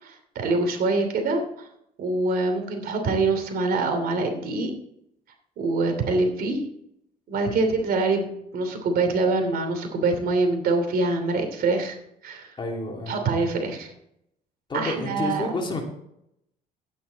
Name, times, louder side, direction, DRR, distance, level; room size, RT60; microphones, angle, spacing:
voice 1, 0.0-1.7 2.0-4.7 5.6-6.6 7.3-8.3 8.5-12.0 12.2-12.5 13.1-13.9 14.7-15.5, right 3 dB, 60° right, 5 dB, 2.9 m, -24 dB
voice 2, 12.6-13.1 14.7-15.8, left 2 dB, 30° left, 1 dB, 2.9 m, -29 dB
12.0 x 9.7 x 4.1 m, 0.76 s
cardioid pair, 110°, 17 cm